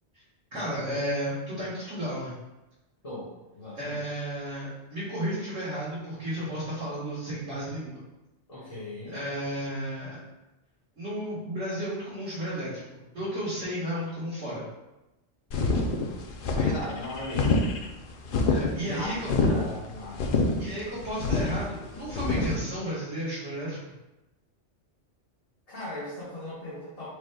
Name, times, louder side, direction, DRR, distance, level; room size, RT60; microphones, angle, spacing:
voice 1, 0.5-2.4 3.8-8.0 9.1-10.2 11.0-14.6 18.4-19.3 20.6-23.8, equal, 75° right, -12 dB, 2.0 m, -33 dB
voice 2, 3.0-4.0 8.5-9.2 16.5-17.7 18.8-20.4 25.7-27.1, left 1 dB, 30° left, -10 dB, 1.3 m, -38 dB
sound 1, 15.5-22.6, left 3 dB, 55° left, 0.6 m, -26 dB
5.0 x 4.6 x 2.3 m, 1.0 s
omnidirectional pair, 1.2 m